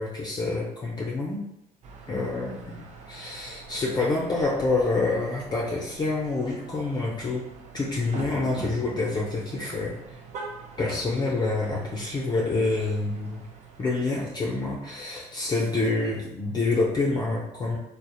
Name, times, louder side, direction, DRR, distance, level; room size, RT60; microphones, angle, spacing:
voice 1, 0.0-1.4 2.1-7.5 7.7-9.9 10.8-13.4 13.8-17.8, left 3 dB, 30° left, -3 dB, 0.4 m, -27 dB
sound 1, 1.8-16.2, right 4 dB, 55° right, 0.4 m, -44 dB
2.7 x 2.0 x 2.3 m, 0.86 s
supercardioid pair, 80°, 14 cm